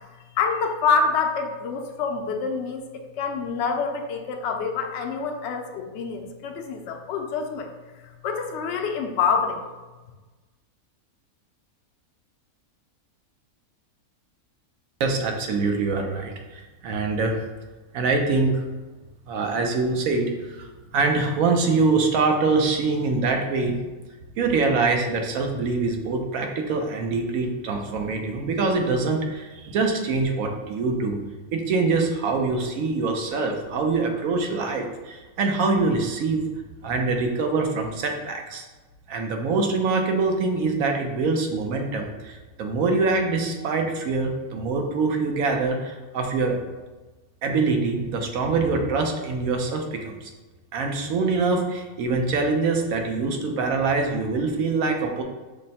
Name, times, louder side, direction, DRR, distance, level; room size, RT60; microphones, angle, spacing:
voice 1, 0.4-2.9 3.2-7.7 8.2-9.6, left 5 dB, 65° left, 4 dB, 0.7 m, -26 dB
voice 2, 15.0-17.4 17.9-18.6 19.3-20.7 20.9-23.8 24.4-31.2 31.5-36.5 36.8-38.7 39.1-46.5 47.4-50.3 50.7-55.2, right 3 dB, 70° right, 3 dB, 1.0 m, -24 dB
5.3 x 2.1 x 4.1 m, 1.2 s
omnidirectional pair, 1.5 m